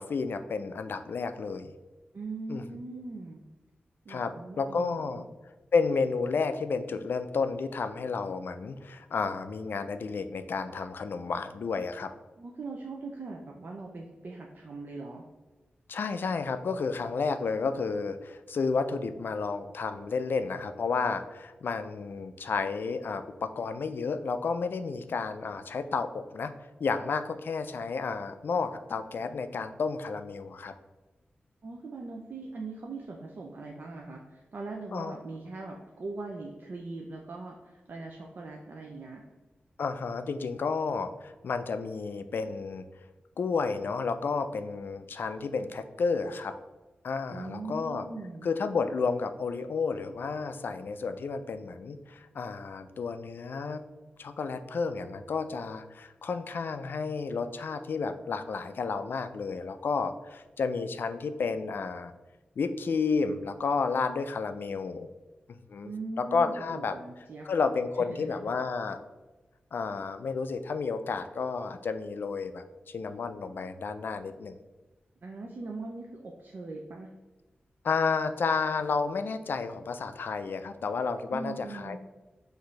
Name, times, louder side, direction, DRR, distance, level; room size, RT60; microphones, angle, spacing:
voice 1, 0.0-1.7 2.5-2.6 4.1-5.3 5.7-12.1 15.9-26.5 26.8-30.7 34.9-35.2 39.8-42.9 43.4-46.5 47.0-48.0 48.4-53.8 54.2-62.1 62.6-65.1 65.5-65.9 66.2-66.9 67.5-69.0 69.7-74.6 77.8-82.0, left 4 dB, 70° left, 9 dB, 0.3 m, -31 dB
voice 2, 2.1-3.4 4.0-5.3 12.4-15.2 31.6-39.2 47.3-48.5 65.8-67.5 68.0-68.3 75.2-77.1 81.3-82.0, right 3 dB, 60° right, 0 dB, 0.5 m, -41 dB
5.9 x 2.6 x 3.2 m, 1.2 s
wide cardioid pair, 105°, 4 cm